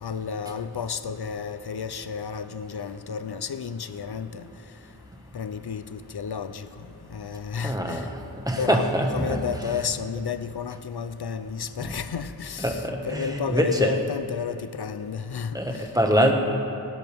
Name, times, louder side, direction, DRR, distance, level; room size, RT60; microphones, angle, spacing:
voice 1, 0.0-4.5 5.3-6.7 7.1-8.1 8.6-15.9 16.2-16.3, left 6 dB, 80° left, 12 dB, 0.7 m, -32 dB
voice 2, 7.6-8.2 8.4-9.4 11.8-11.9 12.6-13.9 15.5-16.3, equal, 10° right, 2 dB, 1.7 m, -24 dB
29.5 x 10.5 x 3.6 m, 2.7 s
wide cardioid pair, 60°, 38 cm